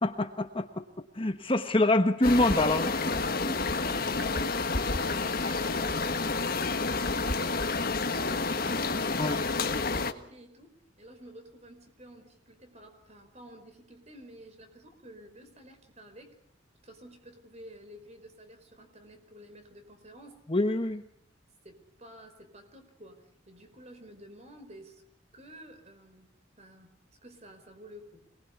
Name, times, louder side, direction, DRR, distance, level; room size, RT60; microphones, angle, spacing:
voice 1, 0.0-3.2 3.4-3.6 9.2-9.4 20.5-21.0, left 2 dB, 25° left, 7 dB, 1.2 m, -26 dB
sound 1, 2.2-10.1, left 3 dB, 50° left, 1.6 m, -29 dB
voice 2, 3.4-9.0 9.4-16.4 16.8-20.4 21.6-25.0 25.3-28.2, right 1 dB, 35° right, 7 dB, 5.1 m, -51 dB
26.0 x 21.0 x 8.4 m, 0.67 s
head